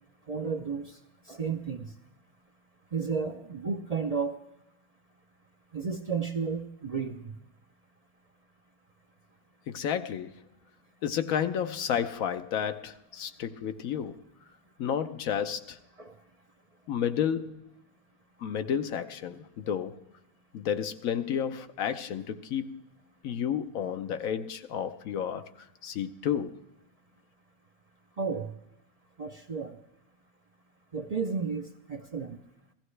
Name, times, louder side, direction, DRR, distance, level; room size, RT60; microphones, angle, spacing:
voice 1, 0.3-1.0 1.3-1.9 2.9-4.4 5.7-7.3 16.0-16.1 28.2-28.5 29.2-29.8 30.9-32.4, right 5 dB, 50° right, 4 dB, 0.4 m, -32 dB
voice 2, 9.7-10.4 11.0-14.2 14.8-15.8 16.9-17.6 18.4-20.0 20.5-22.8 23.2-25.5 25.8-26.6, left 8 dB, 70° left, 9 dB, 1.1 m, -31 dB
15.5 x 15.0 x 3.2 m, 0.89 s
omnidirectional pair, 1.5 m